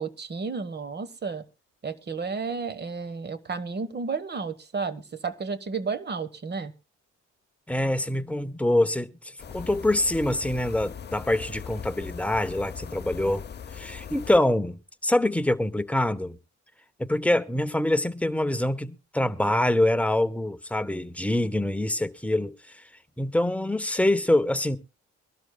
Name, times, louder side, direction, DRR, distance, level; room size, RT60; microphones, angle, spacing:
voice 1, 0.0-1.4 1.8-6.7, right 4 dB, 35° right, 1.3 m, -32 dB
voice 2, 7.7-9.1 9.5-13.4 13.7-14.8 15.0-16.4 17.0-22.6 23.2-24.8, left 1 dB, 5° left, 0.7 m, -25 dB
sound 1, 9.4-14.4, left 7 dB, 35° left, 0.8 m, -40 dB
23.0 x 12.5 x 2.3 m
cardioid pair, 90°, 30 cm